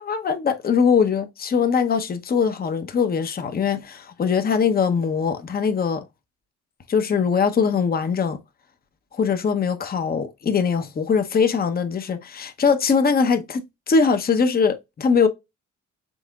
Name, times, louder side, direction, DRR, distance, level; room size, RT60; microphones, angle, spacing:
voice 1, 0.0-6.0 6.9-8.4 9.1-15.3, left 6 dB, 30° left, 0.7 m, -21 dB
5.5 x 3.6 x 2.3 m
cardioid pair, 90°, 30 cm